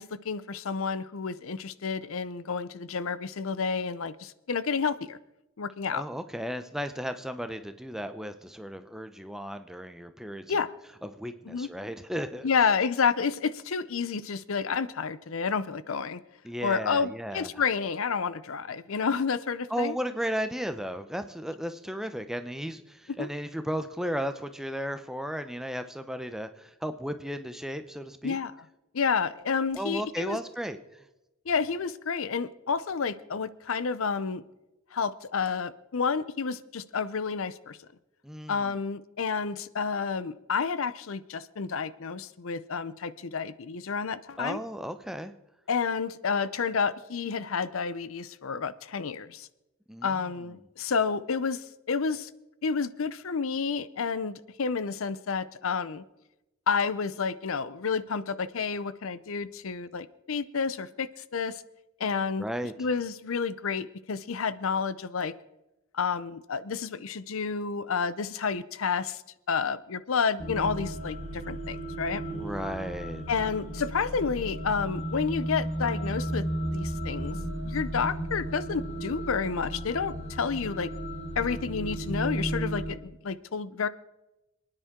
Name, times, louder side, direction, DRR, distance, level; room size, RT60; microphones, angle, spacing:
voice 1, 0.0-5.2 5.6-6.1 10.5-10.7 11.5-11.7 12.4-16.2 16.6-20.0 23.1-23.3 28.2-28.5 28.9-30.4 31.5-34.4 34.9-37.8 38.5-44.6 45.7-49.5 50.0-52.3 52.6-56.0 56.7-61.6 62.0-62.5 62.8-65.3 65.9-69.2 69.5-72.2 73.3-77.4 77.6-80.9 81.4-83.9, left 5 dB, 70° left, 16 dB, 0.6 m, -30 dB
voice 2, 5.9-10.6 11.0-12.5 16.4-17.6 19.7-28.4 29.7-30.8 38.2-38.8 44.4-45.3 49.9-50.1 62.4-62.7 72.3-73.2, equal, ahead, 9 dB, 0.7 m, -35 dB
sound 1, 70.4-82.9, right 1 dB, 30° left, 1.6 m, -34 dB
27.5 x 9.8 x 3.7 m, 0.96 s
head